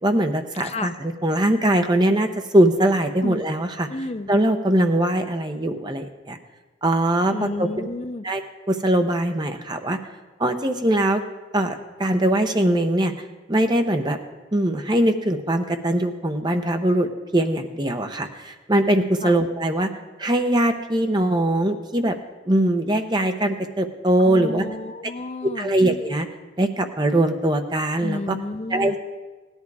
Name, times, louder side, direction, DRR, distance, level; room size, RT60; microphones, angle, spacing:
voice 1, 0.0-3.9 4.3-6.4 6.8-7.9 8.2-8.4 8.7-10.0 10.4-11.2 11.5-13.1 13.5-14.2 14.5-19.9 20.2-22.2 22.5-24.6 25.4-26.3 26.6-28.4 28.7-29.0, right 1 dB, 25° right, 6 dB, 0.8 m, -21 dB
voice 2, 3.9-4.3 7.3-8.3 19.2-19.4 24.2-25.7 28.0-29.0, left 2 dB, 35° left, 11 dB, 0.5 m, -31 dB
16.5 x 11.0 x 4.8 m, 1.2 s
head